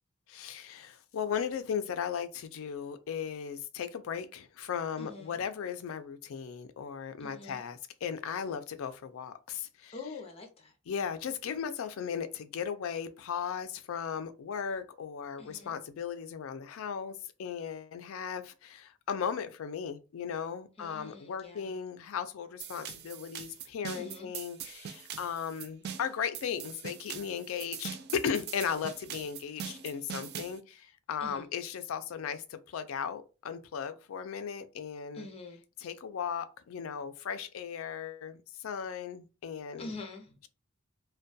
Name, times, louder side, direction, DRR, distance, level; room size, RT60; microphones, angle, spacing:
voice 1, 0.3-10.0 10.9-35.3 35.8-39.9, left 7 dB, 75° left, 0.4 m, -37 dB
voice 2, 5.0-5.4 7.2-7.6 9.9-10.7 15.4-15.7 20.8-21.7 24.0-24.3 31.2-31.5 35.1-35.6 39.8-40.4, left 3 dB, 30° left, 0.6 m, -45 dB
sound 1, 22.6-30.6, right 8 dB, 50° right, 0.3 m, -42 dB
2.2 x 2.2 x 2.6 m
head